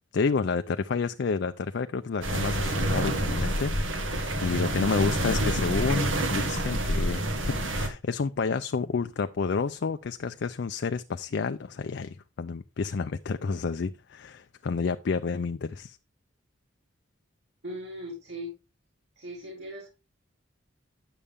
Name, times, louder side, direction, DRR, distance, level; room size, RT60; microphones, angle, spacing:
voice 1, 0.1-16.0, left 4 dB, 60° left, 0.4 m, -30 dB
sound 1, 2.2-7.9, right 1 dB, 75° right, 1.6 m, -28 dB
voice 2, 17.6-18.5 19.2-19.9, equal, 60° right, 3.1 m, -38 dB
9.8 x 7.0 x 3.5 m
head